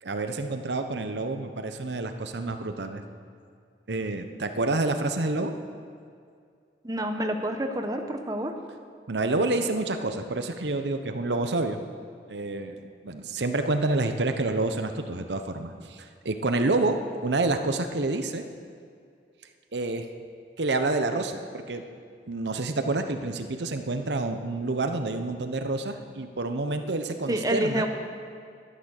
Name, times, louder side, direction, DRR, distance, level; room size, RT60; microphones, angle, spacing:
voice 1, 0.0-3.0 3.9-5.5 9.1-11.8 12.3-18.4 19.7-20.1 20.6-21.8 22.3-27.9, right 2 dB, 80° right, 7 dB, 0.9 m, -28 dB
voice 2, 6.8-8.5 27.3-27.9, right 1 dB, 20° right, 4 dB, 0.9 m, -28 dB
12.0 x 11.5 x 6.5 m, 2.3 s
head